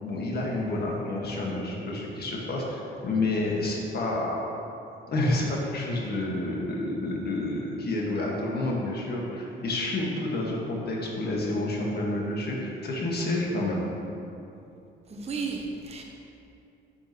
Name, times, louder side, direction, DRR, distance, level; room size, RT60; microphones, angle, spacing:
voice 1, 0.0-4.4 5.1-13.8, left 2 dB, 55° left, -2 dB, 1.7 m, -29 dB
voice 2, 15.1-16.0, right 4 dB, 30° right, 0 dB, 0.9 m, -33 dB
10.5 x 5.9 x 3.1 m, 2.8 s
cardioid pair, 90°, 20 cm